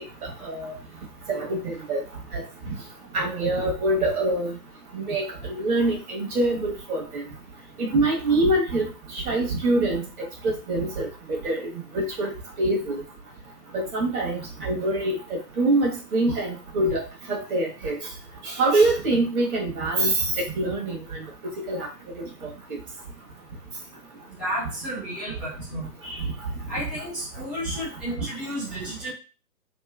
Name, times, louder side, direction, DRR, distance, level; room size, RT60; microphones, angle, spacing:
voice 1, 0.2-0.7 1.3-2.0 2.3-2.4 3.1-4.6 4.9-7.2 7.8-10.0 10.4-12.3 12.6-13.0 13.7-17.0 17.3-18.0 18.4-21.2 21.7-21.9 22.2-22.8 26.0-26.3 28.2-28.3, right 2 dB, 60° right, -1 dB, 1.4 m, -25 dB
voice 2, 24.4-25.9 26.7-29.1, equal, ahead, -11 dB, 0.8 m, -32 dB
3.1 x 2.8 x 2.3 m, 0.35 s
figure-of-eight pair, 135°, 50 cm